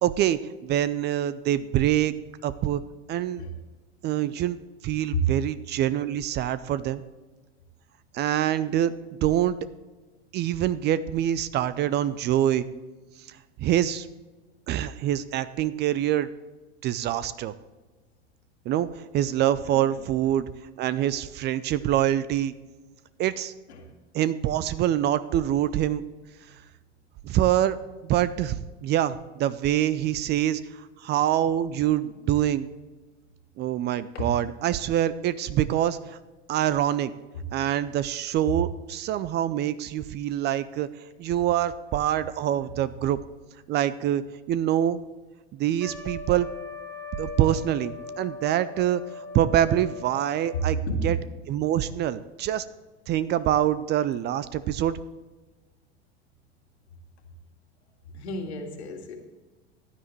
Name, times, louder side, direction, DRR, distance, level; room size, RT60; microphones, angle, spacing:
voice 1, 0.0-2.1 2.4-2.8 3.1-3.5 4.0-4.6 4.8-7.0 8.1-8.9 9.2-9.6 10.3-12.7 13.3-14.1 14.7-16.3 16.8-17.5 18.7-20.5 20.8-22.5 23.2-23.5 24.1-26.0 27.2-27.8 28.0-32.7 33.6-36.2 36.5-37.1 37.5-40.9 41.2-43.2 43.7-44.2 44.5-45.0 45.5-46.5 47.2-51.2 51.5-52.6 53.1-55.0, right 11 dB, 30° right, 16 dB, 0.5 m, -25 dB
voice 2, 19.6-20.0 23.8-23.9 34.1-34.3 50.9-51.1 58.1-59.2, left 1 dB, 75° left, 3 dB, 2.1 m, -31 dB
Trumpet, 45.8-50.8, left 3 dB, 5° left, 1.2 m, -40 dB
15.5 x 9.9 x 3.1 m, 1.2 s
hypercardioid pair, 90°, 34 cm